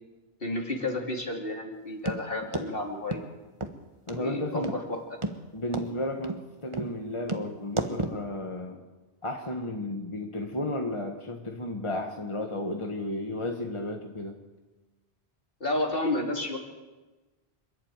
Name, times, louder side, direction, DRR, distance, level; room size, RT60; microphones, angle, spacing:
voice 1, 0.4-3.2 4.1-5.2 15.6-16.6, left 2 dB, 55° left, 2 dB, 3.2 m, -31 dB
sound 1, 2.1-2.2 2.5-2.7 3.1-3.2 3.6-3.7 4.1-4.2 4.6-4.8 5.2-5.4 5.7-5.9 6.2-6.4 6.7-6.9 7.3-7.4 7.8-8.2, right 2 dB, 30° right, 1.4 m, -31 dB
voice 2, 4.1-4.7 5.5-8.8 9.2-14.4, left 1 dB, 30° left, 3 dB, 1.7 m, -33 dB
27.0 x 11.5 x 9.0 m, 1.2 s
omnidirectional pair, 1.1 m